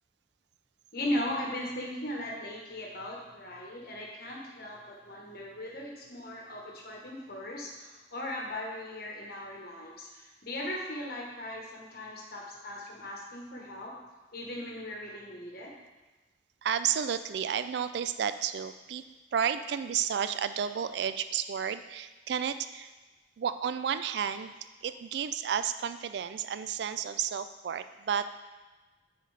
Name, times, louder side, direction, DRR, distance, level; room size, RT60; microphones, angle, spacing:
voice 1, 0.9-14.0 14.3-15.7, left 1 dB, 55° left, -1 dB, 1.1 m, -38 dB
voice 2, 16.6-19.0 19.3-22.9 23.4-24.5 24.8-28.3, right 8 dB, 60° right, 11 dB, 0.3 m, -32 dB
9.0 x 4.0 x 3.3 m, 1.2 s
head